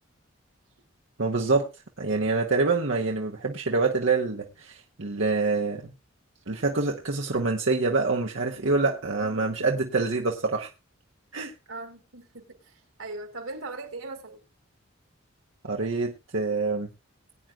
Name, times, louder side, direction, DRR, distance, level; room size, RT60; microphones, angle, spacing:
voice 1, 1.2-1.7 2.0-5.9 6.5-10.7 11.3-11.5 15.6-16.9, right 3 dB, 65° right, 1.1 m, -26 dB
voice 2, 11.7-14.4, right 2 dB, 90° right, 2.4 m, -39 dB
21.0 x 9.2 x 2.4 m
head